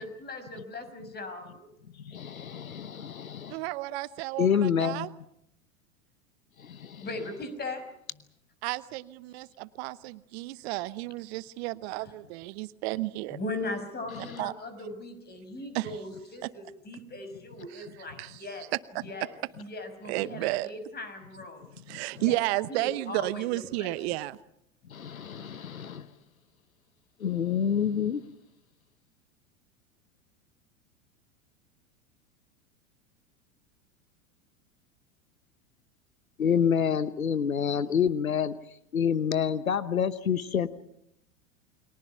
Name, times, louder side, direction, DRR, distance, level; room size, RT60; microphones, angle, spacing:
voice 1, 0.0-1.7 7.0-7.8 13.3-18.7 19.0-21.7 22.2-22.4 22.7-23.5 23.8-23.9, left 2 dB, 25° left, 9 dB, 5.9 m, -39 dB
voice 2, 2.0-3.6 4.4-5.1 6.6-7.0 24.9-26.1 27.2-28.2 36.4-38.5 38.9-40.7, left 7 dB, 90° left, 15 dB, 1.1 m, -27 dB
voice 3, 3.5-5.1 8.6-13.4 14.4-14.5 15.7-15.9 16.4-16.5 17.7-17.9 18.2-18.4 18.7-19.3 20.1-20.7 21.9-24.4, right 19 dB, 50° right, 17 dB, 0.9 m, -32 dB
29.5 x 23.0 x 5.8 m, 0.76 s
hypercardioid pair, 90°, 41 cm